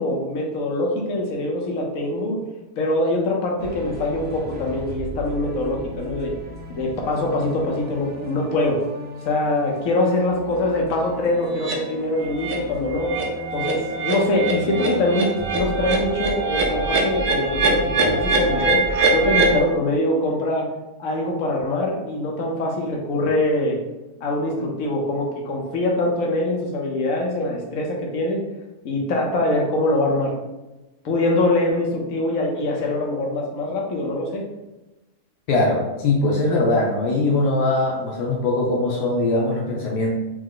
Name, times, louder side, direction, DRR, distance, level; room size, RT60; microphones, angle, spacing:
voice 1, 0.0-2.4 2.8-6.3 6.7-8.8 9.2-13.1 13.5-15.3 15.5-18.8 19.1-20.7 21.0-23.8 24.2-28.4 28.8-30.3 31.0-34.4, left 2 dB, 60° left, 0 dB, 1.1 m, -23 dB
sound 1, 3.6-19.6, equal, 10° right, 0.5 m, -36 dB
sound 2, 11.6-11.8 12.2-12.6 12.9-19.6, right 3 dB, 70° right, 1.2 m, -23 dB
voice 2, 35.5-40.1, left 2 dB, 80° left, -2 dB, 1.2 m, -21 dB
4.6 x 2.0 x 3.8 m, 1.0 s
omnidirectional pair, 1.8 m